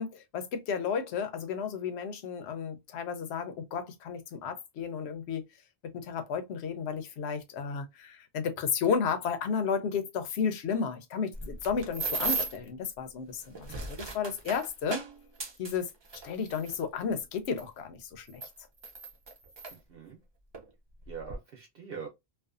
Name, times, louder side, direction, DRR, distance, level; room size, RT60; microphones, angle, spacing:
voice 1, 0.0-5.5 5.8-15.0 15.6-15.9 16.2-18.4, left 6 dB, 85° left, 0.9 m, -33 dB
sound 1, 11.3-12.7 13.4-16.8 17.6-17.7 18.3-19.8 20.5-20.7 21.0-21.4, right 3 dB, 35° right, 0.4 m, -36 dB
voice 2, 19.7-20.2 21.1-22.1, right 6 dB, 65° right, 0.8 m, -43 dB
2.5 x 2.3 x 2.4 m
omnidirectional pair, 1.1 m